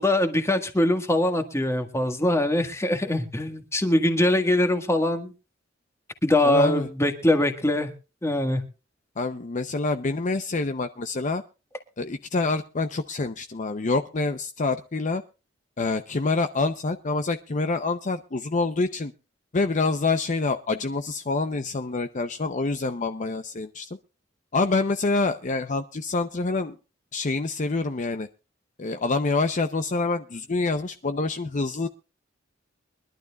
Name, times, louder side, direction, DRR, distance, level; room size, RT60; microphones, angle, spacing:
voice 1, 0.0-5.3 6.2-7.9 8.2-8.6, left 1 dB, 15° left, 6 dB, 1.6 m, -22 dB
voice 2, 6.4-6.9 9.2-11.4 12.0-15.2 15.8-19.1 19.5-23.9 24.5-26.8 27.1-28.3 28.8-31.9, left 3 dB, 40° left, 8 dB, 0.7 m, -26 dB
24.0 x 12.0 x 2.3 m, 0.32 s
head